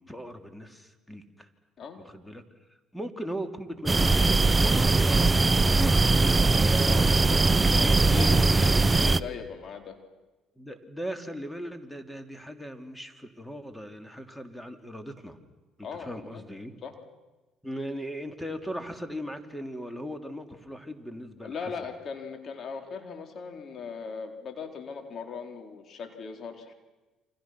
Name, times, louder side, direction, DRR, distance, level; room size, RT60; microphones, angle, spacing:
voice 1, 0.0-1.5 2.0-2.4 2.9-5.3 5.7-6.3 6.6-8.0 8.5-9.2 10.6-15.4 15.8-16.7 17.6-21.7, equal, 5° left, 7 dB, 3.1 m, -39 dB
sound 1, 3.9-9.2, right 3 dB, 20° right, 0.8 m, -21 dB
voice 2, 6.8-10.0 15.8-16.5 16.8-16.9 21.4-26.7, left 5 dB, 50° left, 4 dB, 4.1 m, -39 dB
29.0 x 26.0 x 6.1 m, 1.2 s
hypercardioid pair, 65°, 0 cm